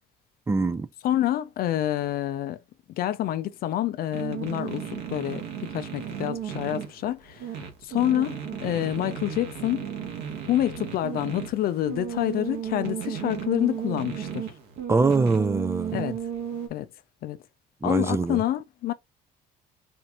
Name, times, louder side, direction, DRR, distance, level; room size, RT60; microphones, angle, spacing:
voice 1, 0.5-0.9 14.9-16.0 17.8-18.4, right 4 dB, 15° right, 0.4 m, -23 dB
voice 2, 1.0-2.6 2.9-7.5 7.8-9.9 10.5-14.5 15.9-16.2 16.7-16.9 17.2-17.4 17.8-18.9, left 12 dB, 65° left, 0.5 m, -27 dB
sound 1, 4.1-16.7, right 8 dB, 80° right, 1.4 m, -34 dB
4.3 x 2.5 x 2.9 m
cardioid pair, 110°, 17 cm